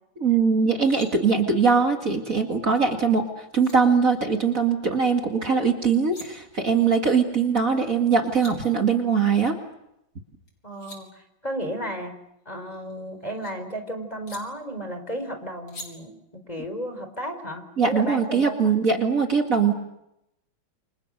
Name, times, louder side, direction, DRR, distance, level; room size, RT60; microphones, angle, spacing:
voice 1, 0.2-9.5 17.8-19.7, right 5 dB, 45° right, 3 dB, 2.5 m, -21 dB
sound 1, 0.6-1.1 3.1-3.2 3.6-3.8 5.8-6.3 7.9-8.0 8.2-8.5 10.5-11.0 12.5-13.5 14.3-14.4 15.7-15.9, left 1 dB, 75° left, 5.5 m, -44 dB
voice 2, 10.6-12.1 12.5-18.6, equal, 20° left, 6 dB, 4.4 m, -33 dB
29.0 x 26.5 x 6.6 m, 0.83 s
omnidirectional pair, 2.2 m